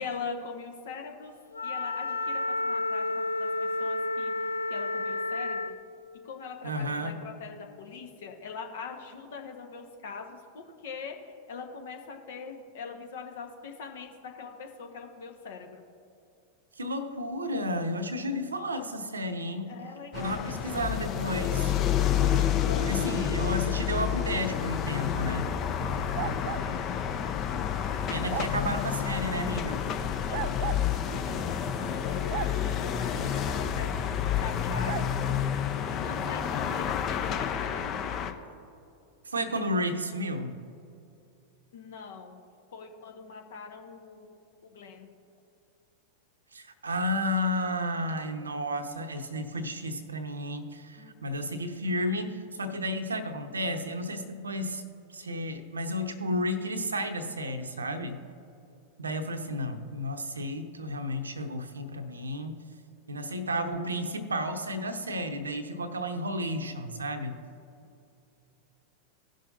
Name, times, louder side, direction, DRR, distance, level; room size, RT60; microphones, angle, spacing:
voice 1, 0.0-1.3 1.6-4.3 4.7-5.8 6.2-11.2 11.5-15.7 19.7-20.4 22.6-23.2 25.8-26.9 30.3-35.3 35.8-38.2 41.7-42.4 42.7-44.3 44.6-45.1 51.0-51.1, left 5 dB, 60° left, 3 dB, 1.2 m, -42 dB
Wind instrument woodwind instrument, 1.5-5.8, left 2 dB, 80° left, 0.4 m, -31 dB
voice 2, 6.6-7.2 16.8-19.7 20.1-21.7 22.8-25.5 28.1-29.8 39.2-40.6 46.5-54.8 55.1-58.2 59.0-62.6 63.1-67.4, equal, 75° right, 8 dB, 0.8 m, -32 dB
sound 1, 20.1-38.3, left 9 dB, 35° left, 0.7 m, -29 dB
sound 2, 26.1-26.7 28.3-28.5 30.3-30.9 32.3-32.5 34.8-35.1, right 12 dB, 50° right, 0.3 m, -34 dB
17.5 x 6.3 x 2.7 m, 2.6 s
figure-of-eight pair, 90°, 0 cm